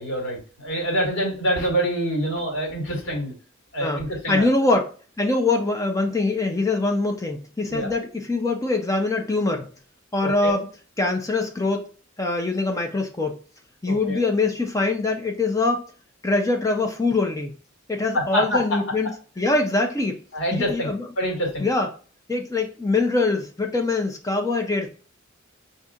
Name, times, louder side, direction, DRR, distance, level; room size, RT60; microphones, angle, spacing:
voice 1, 0.0-3.3 3.7-4.4 7.7-7.9 10.2-10.5 13.9-14.2 18.1-18.8 20.3-20.9 21.2-21.7, equal, 70° left, -1 dB, 1.9 m, -26 dB
voice 2, 3.8-4.9 5.2-9.7 10.1-10.7 11.0-11.9 12.2-13.4 13.8-15.8 16.2-17.5 17.9-19.1 19.4-20.2 20.5-21.1 21.6-21.9 22.3-25.0, left 3 dB, 15° left, 3 dB, 0.5 m, -23 dB
6.5 x 2.7 x 2.4 m, 0.39 s
head